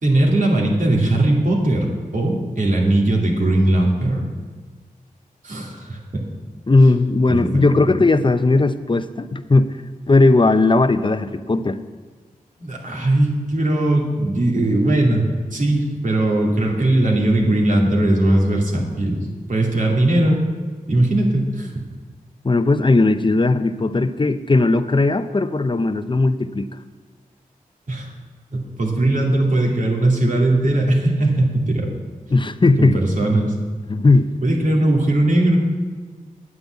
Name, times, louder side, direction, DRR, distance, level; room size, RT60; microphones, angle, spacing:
voice 1, 0.0-4.2 5.4-6.3 7.3-7.9 12.6-15.2 15.5-20.4 20.9-21.8 27.9-28.1 28.5-31.9 32.8-33.5 34.4-35.6, right 1 dB, 60° right, -1 dB, 2.8 m, -19 dB
voice 2, 6.7-9.8 10.1-11.8 22.4-26.7 32.3-33.0 33.9-34.3, left 3 dB, 35° left, 11 dB, 0.7 m, -17 dB
9.3 x 8.7 x 8.3 m, 1.5 s
wide cardioid pair, 60°, 15 cm